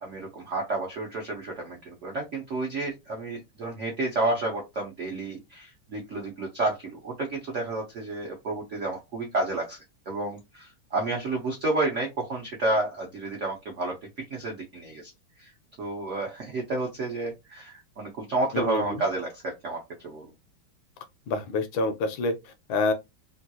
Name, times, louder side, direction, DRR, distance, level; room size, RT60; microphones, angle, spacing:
voice 1, 0.0-9.8 10.1-15.1 15.4-15.5 15.8-20.3, right 2 dB, 85° right, 0.6 m, -31 dB
voice 2, 18.5-19.0 21.3-22.9, left 3 dB, 75° left, 1.2 m, -27 dB
3.6 x 2.3 x 2.7 m
omnidirectional pair, 2.4 m